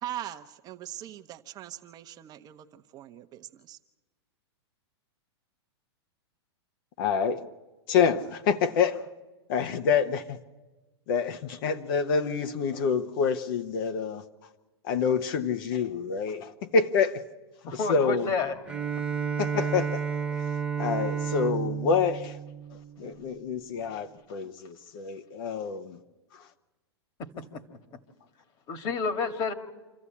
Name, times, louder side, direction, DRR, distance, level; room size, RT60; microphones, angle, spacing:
voice 1, 0.0-3.8, right 12 dB, 30° right, 0.8 m, -41 dB
voice 2, 7.0-7.4 7.9-9.0 9.5-10.4 11.1-14.2 14.8-17.2 17.7-18.3 19.4-20.0 20.8-22.4 23.0-26.0 26.3-26.4, left 6 dB, 55° left, 1.0 m, -27 dB
voice 3, 17.7-18.6 27.4-27.6 28.7-29.5, left 4 dB, 35° left, 1.9 m, -30 dB
Bowed string instrument, 18.7-23.4, right 6 dB, 5° right, 1.2 m, -31 dB
26.5 x 14.0 x 8.5 m
hypercardioid pair, 135°, 14 cm